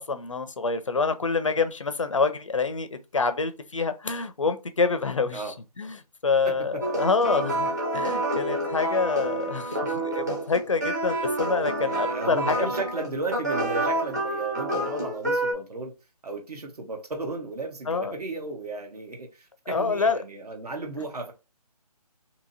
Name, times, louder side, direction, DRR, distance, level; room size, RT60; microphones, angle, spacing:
voice 1, 0.0-2.9 3.1-5.4 5.8-12.6 17.9-18.2 19.7-20.2, left 4 dB, 55° left, 0.4 m, -26 dB
voice 2, 6.4-6.8 8.5-8.6 9.4-9.5 11.8-15.9 16.2-21.3, right 3 dB, 75° right, 1.2 m, -34 dB
sound 1, 6.8-15.5, right 1 dB, 30° right, 0.7 m, -28 dB
2.8 x 2.7 x 2.6 m
hypercardioid pair, 180°, 20 cm